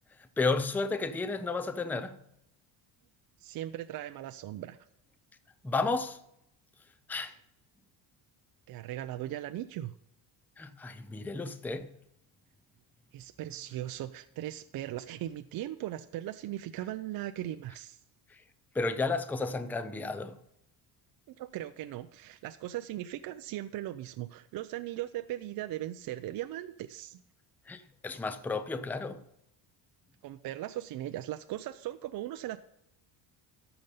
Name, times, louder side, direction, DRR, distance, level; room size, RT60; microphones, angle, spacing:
voice 1, 0.4-2.1 5.6-6.2 7.1-7.3 10.6-11.9 18.8-20.4 27.7-29.2, left 3 dB, 5° left, 0.4 m, -32 dB
voice 2, 3.4-4.8 8.7-9.9 13.1-18.0 21.3-27.2 30.2-32.6, right 13 dB, 50° right, 0.5 m, -38 dB
13.5 x 5.3 x 5.4 m
cardioid pair, 115°, 45 cm